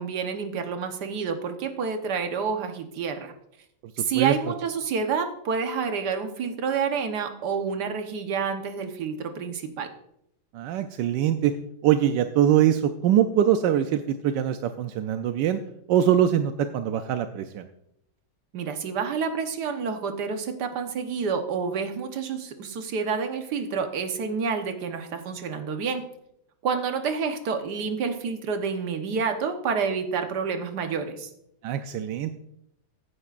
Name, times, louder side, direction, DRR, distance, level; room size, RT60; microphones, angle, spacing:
voice 1, 0.0-3.3 4.0-9.9 18.5-26.0 26.6-31.3, right 5 dB, 70° right, 6 dB, 1.6 m, -28 dB
voice 2, 10.5-11.5 11.8-15.6 15.9-17.7 31.6-32.3, right 10 dB, 85° right, 8 dB, 1.3 m, -23 dB
15.5 x 9.7 x 2.5 m, 0.77 s
omnidirectional pair, 1.9 m